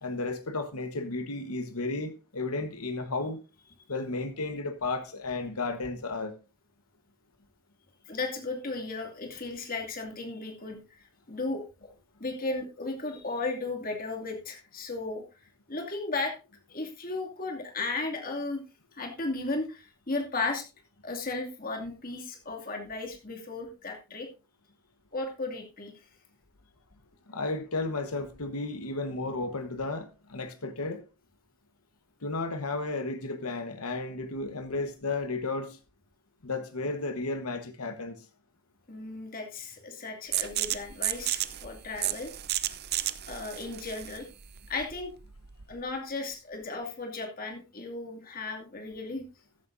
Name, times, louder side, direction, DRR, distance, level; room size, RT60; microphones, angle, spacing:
voice 1, 0.0-3.4 3.9-6.4 27.3-31.1 32.2-35.8 36.4-38.2, left 3 dB, 90° left, 1.3 m, -33 dB
voice 2, 8.1-10.8 11.3-11.9 12.2-15.2 15.7-16.4 16.7-18.6 18.9-20.6 21.0-24.3 25.1-25.9 38.9-42.3 43.3-44.3 44.7-45.1 45.7-49.2, left 3 dB, 40° left, 2.5 m, -35 dB
sound 1, 40.3-45.8, right 13 dB, 45° right, 0.6 m, -33 dB
14.0 x 11.0 x 2.7 m
head